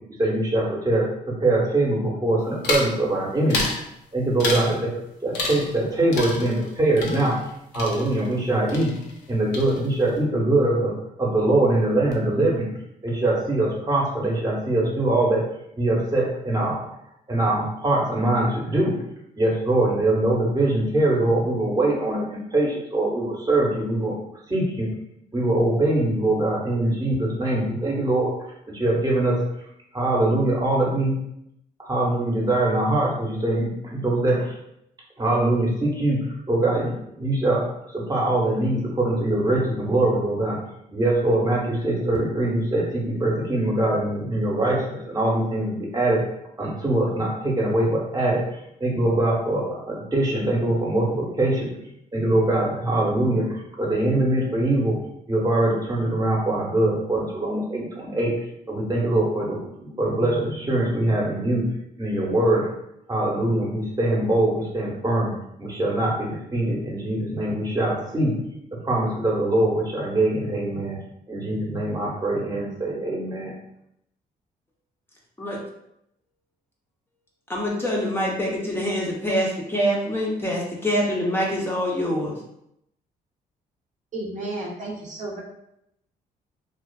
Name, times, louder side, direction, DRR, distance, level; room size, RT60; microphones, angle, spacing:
voice 1, 0.2-3.7 4.1-4.9 5.2-7.4 7.7-8.9 9.3-10.9 11.2-12.7 13.0-15.4 15.8-16.8 17.3-18.9 19.4-24.2 24.5-24.9 25.3-28.3 28.7-29.4 29.9-31.1 31.8-34.5 35.2-36.2 36.5-37.6 37.9-40.6 40.9-46.2 46.6-48.4 48.8-51.7 52.1-53.5 53.8-54.9 55.3-58.3 58.7-61.7 62.0-62.7 63.1-65.3 65.6-68.4 68.8-71.0 71.3-73.5, right 1 dB, 20° right, -3 dB, 0.8 m, -23 dB
sound 1, 2.6-3.0 3.5-3.8 4.4-4.8 5.3-5.8 6.1-8.4 8.7-9.3 9.5-10.1, left 3 dB, 85° left, 0.5 m, -29 dB
voice 2, 77.5-82.4, equal, 15° left, -3 dB, 0.6 m, -25 dB
voice 3, 84.1-85.4, right 2 dB, 45° right, -2 dB, 0.6 m, -32 dB
2.4 x 2.4 x 2.2 m, 0.79 s
cardioid pair, 75°, 17 cm